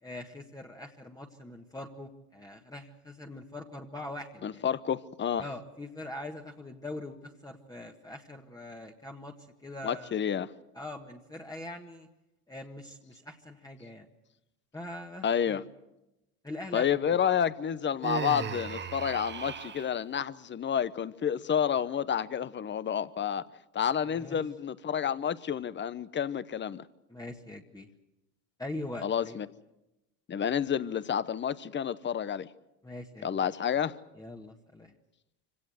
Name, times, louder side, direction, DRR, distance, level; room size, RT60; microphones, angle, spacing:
voice 1, 0.0-4.6 5.4-7.2 7.4-9.3 9.6-10.1 10.7-12.1 12.5-14.1 14.7-15.6 16.4-17.2 24.1-24.4 27.1-27.9 28.6-29.4 32.8-33.5 34.1-34.9, left 1 dB, 10° left, 1.7 m, -42 dB
voice 2, 4.4-5.5 9.8-10.5 15.2-15.6 16.7-23.5 23.7-26.8 29.0-29.5 30.3-32.5 33.2-34.0, left 8 dB, 25° left, 0.9 m, -30 dB
Human voice, 18.0-19.9, right 6 dB, 25° right, 1.2 m, -36 dB
25.0 x 17.5 x 7.9 m
supercardioid pair, 95°, 43 cm